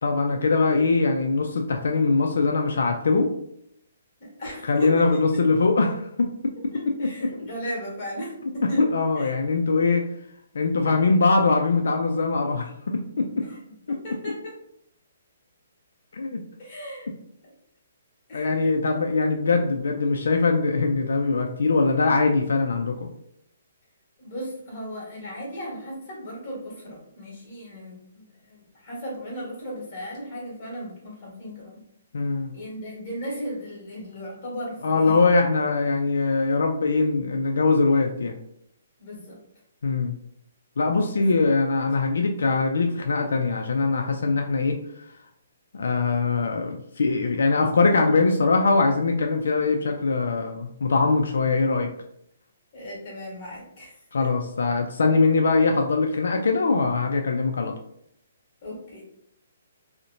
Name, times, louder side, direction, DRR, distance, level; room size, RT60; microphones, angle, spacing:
voice 1, 0.0-3.3 4.7-7.4 8.8-10.1 10.5-13.5 13.9-14.0 16.1-16.4 18.3-23.1 32.1-32.5 34.8-38.4 39.8-40.2 40.8-44.8 45.7-51.9 54.1-57.8, left 3 dB, 80° left, 3 dB, 0.3 m, -22 dB
voice 2, 4.2-5.2 6.7-9.4 13.4-14.5 16.6-17.1 17.4-17.5 18.3-18.6 24.2-31.8 32.5-35.2 39.0-39.4 41.2-41.3 52.7-54.4 58.6-59.0, equal, 25° left, -5 dB, 1.3 m, -36 dB
2.8 x 2.1 x 2.5 m, 0.72 s
hypercardioid pair, 175°, 0 cm